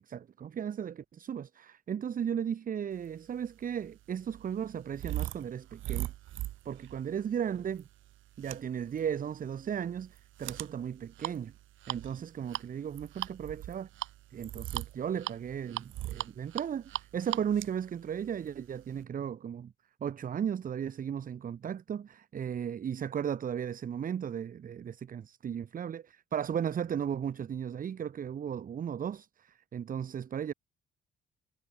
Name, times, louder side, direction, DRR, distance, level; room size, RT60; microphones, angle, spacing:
voice 1, 0.0-6.1 6.6-7.9 8.4-11.5 11.9-13.9 14.3-19.7 20.0-26.0 26.3-30.5, right 8 dB, 45° right, 0.8 m, -35 dB
sound 1, 3.4-19.0, right 15 dB, 80° right, 0.9 m, -41 dB
cardioid pair, 90°, 20 cm